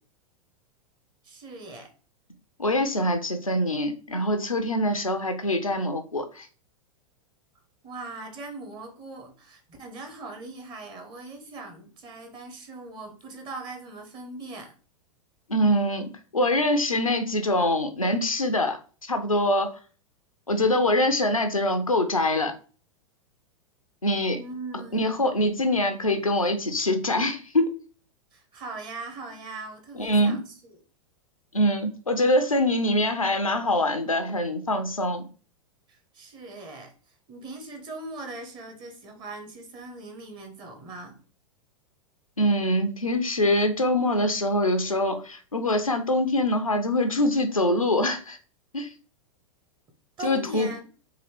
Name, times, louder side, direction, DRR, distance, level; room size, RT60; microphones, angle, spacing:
voice 1, 1.2-1.9 7.8-14.7 24.3-25.3 28.3-30.8 35.9-41.2 50.2-50.9, right 3 dB, 25° right, 1.0 m, -40 dB
voice 2, 2.6-6.5 15.5-19.8 20.5-22.5 24.0-24.4 24.9-27.7 30.0-30.5 31.5-35.2 42.4-48.4 48.7-48.9 50.2-50.7, left 1 dB, 90° left, 0.6 m, -24 dB
3.8 x 2.7 x 3.3 m
figure-of-eight pair, 95°, 17 cm